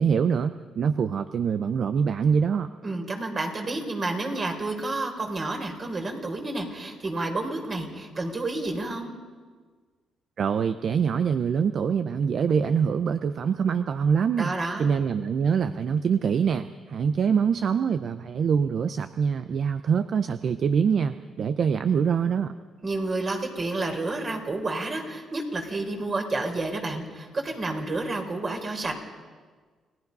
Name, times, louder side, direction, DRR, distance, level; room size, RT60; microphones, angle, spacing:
voice 1, 0.0-2.7 10.4-14.5 14.8-22.5, right 6 dB, 55° right, 11 dB, 0.7 m, -24 dB
voice 2, 2.8-9.1 14.4-14.9 22.8-28.9, right 2 dB, 35° right, 3 dB, 4.4 m, -30 dB
29.5 x 19.0 x 5.5 m, 1.5 s
cardioid pair, 90°, 0 cm